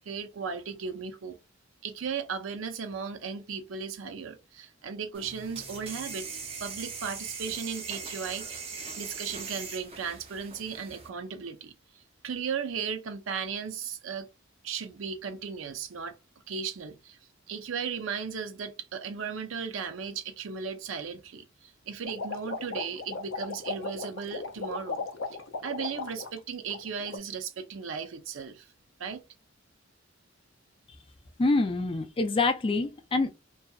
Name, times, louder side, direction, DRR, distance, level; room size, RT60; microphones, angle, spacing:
voice 1, 0.0-1.4 1.8-8.6 8.9-11.7 12.2-14.3 14.6-16.2 16.5-17.2 17.5-25.0 25.6-28.7 29.0-29.2, right 6 dB, 85° right, 0.5 m, -36 dB
sound 1, 5.1-11.1, right 5 dB, 30° right, 0.6 m, -40 dB
sound 2, 22.0-26.4 26.7-27.2, left 4 dB, 80° left, 0.5 m, -36 dB
voice 2, 31.4-33.3, left 3 dB, 25° left, 0.3 m, -26 dB
2.7 x 2.2 x 2.3 m
head